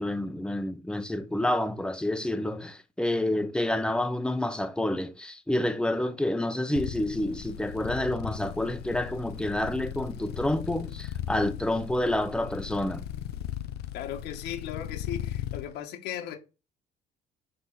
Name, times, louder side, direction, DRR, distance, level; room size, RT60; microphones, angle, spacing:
voice 1, 0.0-13.0, left 1 dB, 5° left, 1.0 m, -29 dB
sound 1, 6.7-15.7, left 11 dB, 75° left, 0.7 m, -37 dB
voice 2, 13.9-16.3, left 10 dB, 90° left, 2.1 m, -37 dB
9.9 x 3.7 x 4.2 m
cardioid pair, 110°, 17 cm